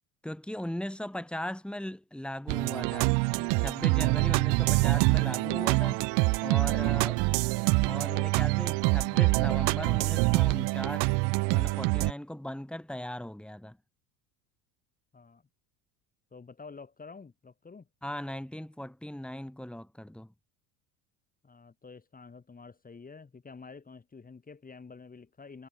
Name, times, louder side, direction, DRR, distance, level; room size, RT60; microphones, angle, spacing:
voice 1, 0.2-6.0 6.4-7.2 7.8-11.2 11.5-13.8 18.0-20.3, left 1 dB, ahead, 5.1 m, -38 dB
sound 1, 2.5-12.1, right 29 dB, 65° right, 1.3 m, -25 dB
voice 2, 15.1-15.5 16.3-17.9 21.4-25.7, left 4 dB, 20° left, 4.5 m, -49 dB
supercardioid pair, 110°, 45 cm